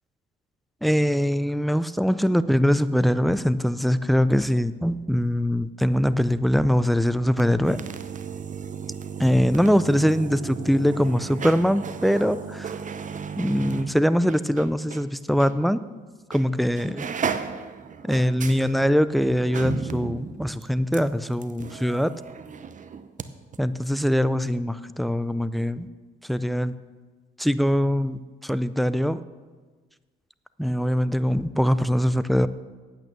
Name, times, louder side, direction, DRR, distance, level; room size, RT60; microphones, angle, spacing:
voice 1, 0.8-7.8 9.2-12.7 13.4-15.8 16.3-17.0 18.0-22.1 23.6-25.9 26.3-26.7 27.4-29.2 30.6-32.5, equal, ahead, 14 dB, 0.4 m, -22 dB
sound 1, 7.3-15.1 15.4-15.5 16.3-16.5 16.7-23.3 23.5-23.6, right 6 dB, 40° right, 0.7 m, -35 dB
9.0 x 8.7 x 6.7 m, 1.4 s
cardioid pair, 90°, 20 cm